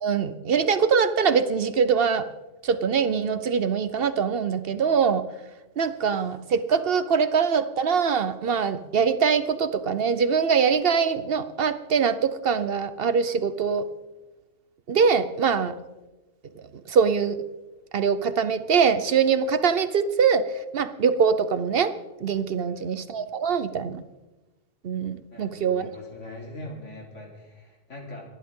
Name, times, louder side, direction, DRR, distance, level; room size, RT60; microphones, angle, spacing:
voice 1, 0.0-2.3 2.6-5.2 5.8-13.9 14.9-15.7 16.6-17.4 17.9-21.9 22.2-24.0 24.8-25.9, right 6 dB, 55° right, 12 dB, 0.9 m, -23 dB
voice 2, 25.3-28.3, left 1 dB, 70° left, -1 dB, 3.6 m, -42 dB
28.5 x 10.5 x 3.7 m, 1.1 s
omnidirectional pair, 1.3 m